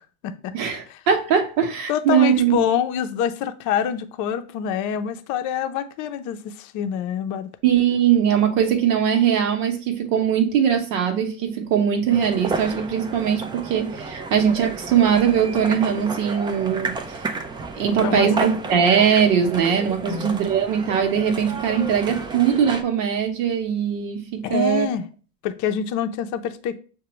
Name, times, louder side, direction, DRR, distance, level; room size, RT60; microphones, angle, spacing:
voice 1, 0.0-0.5 0.9-1.0 1.9-7.5 17.9-18.3 20.0-20.3 24.4-25.1 25.4-26.7, left 9 dB, 45° left, 0.6 m, -26 dB
voice 2, 0.5-2.7 7.6-17.2 17.7-24.9, right 8 dB, 70° right, 0.9 m, -21 dB
sound 1, 12.1-22.8, right 4 dB, 15° right, 0.3 m, -32 dB
6.6 x 2.2 x 3.0 m
hypercardioid pair, 85°, 40 cm